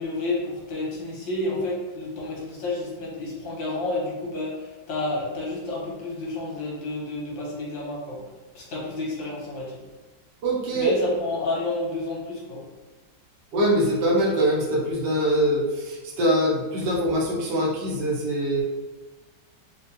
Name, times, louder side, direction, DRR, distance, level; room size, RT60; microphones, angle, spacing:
voice 1, 0.0-8.2 8.6-9.8 10.7-12.6, left 2 dB, 85° left, -4 dB, 1.7 m, -30 dB
voice 2, 10.4-10.9 13.5-18.6, right 1 dB, 70° right, -2 dB, 1.2 m, -23 dB
4.4 x 2.4 x 2.6 m, 1.2 s
omnidirectional pair, 2.0 m